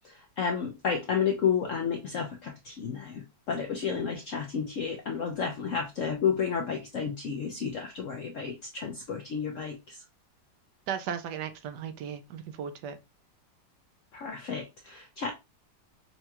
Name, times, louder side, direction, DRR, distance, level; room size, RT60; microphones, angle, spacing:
voice 1, 0.0-10.0 14.1-15.3, left 6 dB, 70° left, 0.7 m, -31 dB
voice 2, 10.9-13.0, right 8 dB, 75° right, 1.1 m, -36 dB
5.4 x 2.3 x 2.8 m
omnidirectional pair, 2.0 m